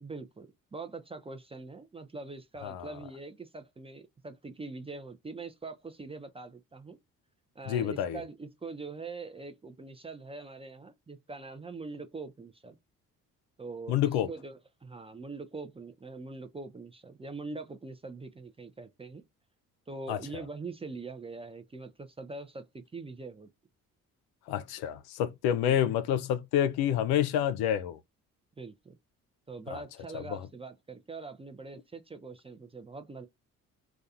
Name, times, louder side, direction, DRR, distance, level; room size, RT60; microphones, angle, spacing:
voice 1, 0.0-7.0 7.6-12.8 13.6-19.2 19.9-23.5 25.6-25.8 28.6-28.9 29.5-33.3, right 3 dB, 15° right, 0.4 m, -43 dB
voice 2, 7.7-8.2 13.9-14.3 20.1-20.4 24.5-28.0 29.7-29.8 30.1-30.4, left 10 dB, 70° left, 0.5 m, -28 dB
2.3 x 2.2 x 2.6 m
hypercardioid pair, 45°, 40 cm